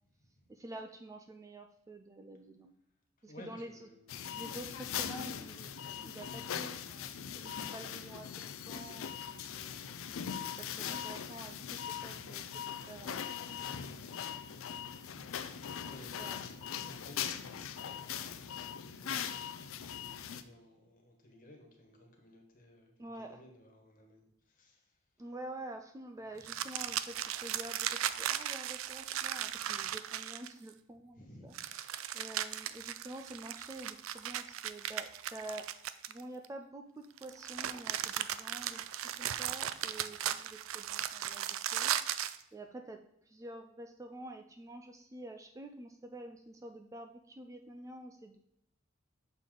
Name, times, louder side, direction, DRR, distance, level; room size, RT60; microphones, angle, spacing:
voice 1, 0.5-2.7 3.2-3.9 4.3-9.7 10.6-13.7 16.2-16.4 23.0-23.4 25.2-35.7 36.1-38.8 39.2-42.0 42.5-48.4, right 1 dB, 15° right, 6 dB, 0.4 m, -48 dB
voice 2, 3.3-4.2 15.8-25.0 26.5-26.6 31.1-31.7, left 1 dB, 45° left, 2 dB, 1.5 m, -57 dB
sound 1, 4.1-20.4, left 8 dB, 85° left, 0.4 m, -41 dB
sound 2, 26.4-30.7 31.5-36.5 37.2-42.4, right 11 dB, 85° right, 0.4 m, -37 dB
6.5 x 5.2 x 3.8 m, 0.77 s
head